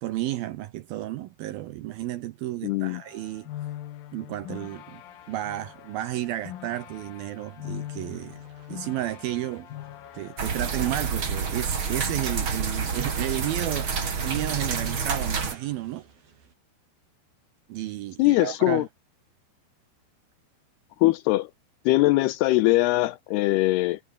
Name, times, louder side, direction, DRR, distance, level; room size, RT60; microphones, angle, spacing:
voice 1, 0.0-3.5 4.1-5.0 5.3-9.7 10.1-13.9 14.2-16.1 17.7-18.9, right 14 dB, 80° right, 2.3 m, -32 dB
voice 2, 2.6-3.0 18.2-18.9 21.0-21.5 21.9-24.0, left 18 dB, 80° left, 2.4 m, -21 dB
sound 1, 2.9-10.9, left 13 dB, 65° left, 2.7 m, -42 dB
sound 2, 5.1-16.5, right 6 dB, 55° right, 6.5 m, -52 dB
sound 3, 10.4-15.6, right 5 dB, 35° right, 2.9 m, -28 dB
omnidirectional pair, 5.2 m